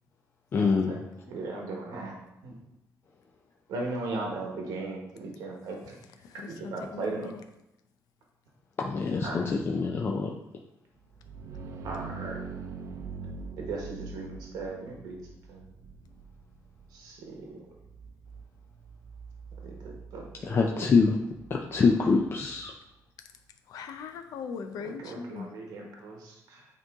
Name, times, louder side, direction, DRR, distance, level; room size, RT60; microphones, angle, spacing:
voice 1, 0.5-0.9 8.8-10.3 20.5-21.2 21.5-22.7, left 4 dB, 40° left, 0 dB, 0.5 m, -25 dB
voice 2, 1.3-2.1 2.4-2.6 3.7-6.0 6.5-7.3 9.2-9.5 11.8-12.4 13.6-15.2 15.5-15.6 16.9-17.7 19.6-20.8 21.7-21.8 25.0-26.7, right 3 dB, 85° right, 0 dB, 1.2 m, -37 dB
voice 3, 6.3-7.4 23.7-25.5, left 5 dB, 85° left, 7 dB, 0.6 m, -40 dB
sound 1, 11.0-22.6, right 4 dB, 65° right, 0.7 m, -44 dB
9.0 x 3.1 x 3.6 m, 0.87 s
cardioid pair, 120°, 6 cm